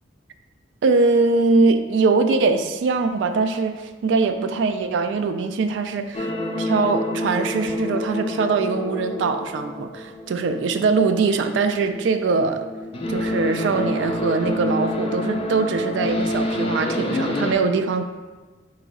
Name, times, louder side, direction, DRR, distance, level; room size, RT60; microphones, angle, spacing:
voice 1, 0.8-6.3 6.6-12.6 13.1-18.0, right 4 dB, 70° right, 7 dB, 0.3 m, -22 dB
sound 1, 6.1-11.5 11.7-17.5, left 1 dB, 30° left, 0.4 m, -28 dB
4.7 x 3.0 x 3.6 m, 1.3 s
head